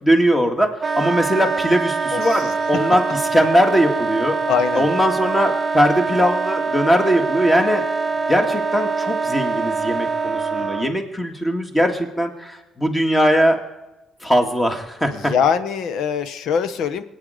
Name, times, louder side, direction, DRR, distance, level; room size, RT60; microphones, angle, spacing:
voice 1, 0.0-4.4 4.7-7.9 8.3-13.6 14.2-15.3, equal, 10° left, 4 dB, 2.0 m, -20 dB
Wind instrument woodwind instrument, 0.8-10.9, right 4 dB, 25° right, 0.7 m, -24 dB
voice 2, 2.1-2.4 2.7-2.9 4.5-4.9 10.6-10.7 15.1-17.0, left 7 dB, 70° left, 12 dB, 1.0 m, -22 dB
21.5 x 9.4 x 5.1 m, 1.0 s
cardioid pair, 115°, 0 cm